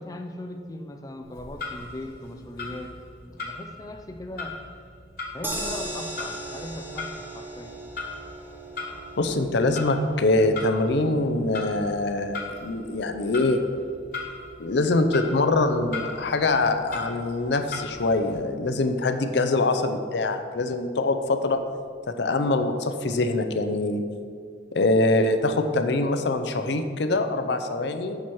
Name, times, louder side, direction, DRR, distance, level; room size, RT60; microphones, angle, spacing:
voice 1, 0.0-2.9 3.2-4.6 5.3-7.8, left 1 dB, 20° left, 4 dB, 0.4 m, -39 dB
Clock, 1.2-18.4, left 3 dB, 50° left, 1.3 m, -40 dB
sound 1, 5.4-17.7 18.0-18.1 18.4-18.5, right 1 dB, 10° right, 0.7 m, -40 dB
voice 2, 9.2-13.6 14.6-21.6 22.2-24.0 24.7-28.2, left 2 dB, 70° left, 7 dB, 0.5 m, -24 dB
7.2 x 6.0 x 4.6 m, 2.2 s
head